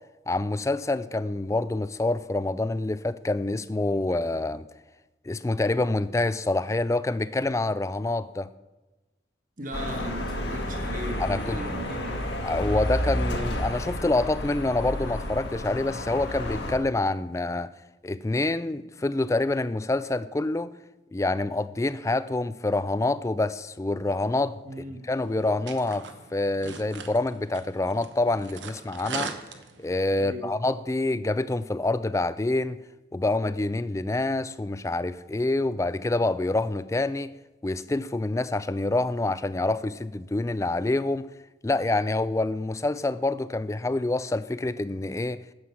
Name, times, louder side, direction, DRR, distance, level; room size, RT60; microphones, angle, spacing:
voice 1, 0.3-4.6 5.3-8.5 11.2-11.6 12.4-17.7 18.0-20.7 21.1-29.3 29.8-32.8 33.1-37.3 37.6-41.3 41.6-45.4, left 2 dB, 15° left, 15 dB, 0.3 m, -27 dB
voice 2, 9.6-12.2 24.6-25.0 30.2-30.5, right 1 dB, 45° right, 2 dB, 1.4 m, -37 dB
sound 1, 9.7-16.8, left 1 dB, 65° left, 1.5 m, -31 dB
sound 2, 25.1-30.1, right 5 dB, 75° right, 1.0 m, -40 dB
9.5 x 7.6 x 5.8 m, 1.1 s
head